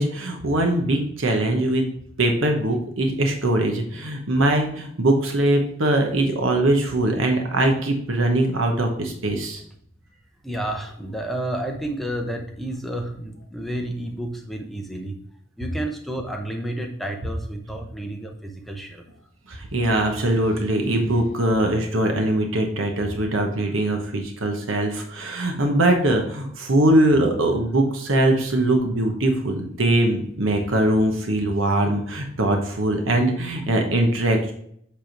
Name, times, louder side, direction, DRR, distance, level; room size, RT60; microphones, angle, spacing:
voice 1, 0.0-1.9 2.2-9.6 19.5-34.5, right 1 dB, 75° right, 3 dB, 1.0 m, -21 dB
voice 2, 10.4-15.2 15.6-19.0, right 1 dB, ahead, 2 dB, 0.7 m, -30 dB
7.8 x 3.4 x 4.5 m, 0.68 s
head